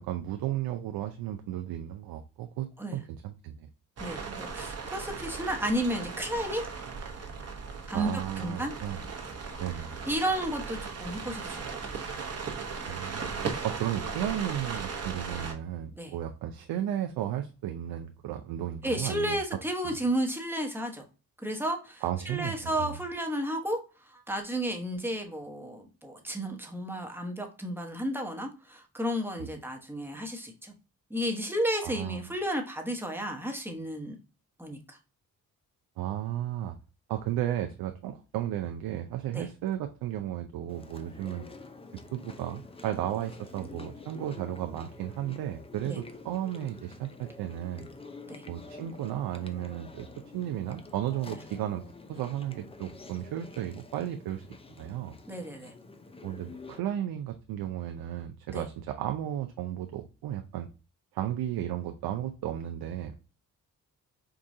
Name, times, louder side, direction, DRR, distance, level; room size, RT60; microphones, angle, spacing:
voice 1, 0.0-3.7 7.9-9.0 9.6-10.0 12.8-19.4 19.8-20.0 22.0-23.0 29.4-29.5 31.8-32.2 36.0-36.7 37.1-41.5 42.1-47.9 48.5-50.1 50.3-51.8 52.1-55.1 56.2-60.7 61.1-63.1, right 11 dB, 80° right, 6 dB, 0.5 m, -34 dB
voice 2, 4.0-6.7 7.9-8.1 8.4-8.7 10.0-11.8 15.9-16.1 18.8-21.0 21.4-23.8 24.1-30.7 31.1-34.2 34.6-35.0 39.3-39.5 45.9-46.0 48.3-48.4 55.3-55.7 58.5-58.6, right 1 dB, 5° right, 3 dB, 1.0 m, -32 dB
sound 1, 4.0-15.5, right 5 dB, 40° right, 0.9 m, -37 dB
Chewing mastication, 40.7-56.8, left 3 dB, 15° left, 0.4 m, -48 dB
4.7 x 2.3 x 2.6 m, 0.33 s
cardioid pair, 85°, 36 cm